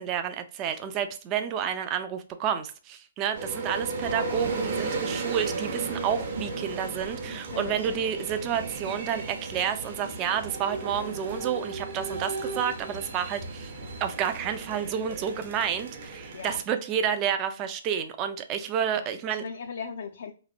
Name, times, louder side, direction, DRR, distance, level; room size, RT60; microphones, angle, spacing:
voice 1, 0.0-13.7 14.0-19.4, right 8 dB, 20° right, 0.3 m, -30 dB
sound 1, 3.3-16.6, right 3 dB, 45° right, 0.7 m, -35 dB
voice 2, 7.3-7.9 16.3-16.6 18.9-20.3, left 6 dB, 60° left, 0.3 m, -39 dB
3.0 x 2.1 x 2.4 m
hypercardioid pair, 165°, 0 cm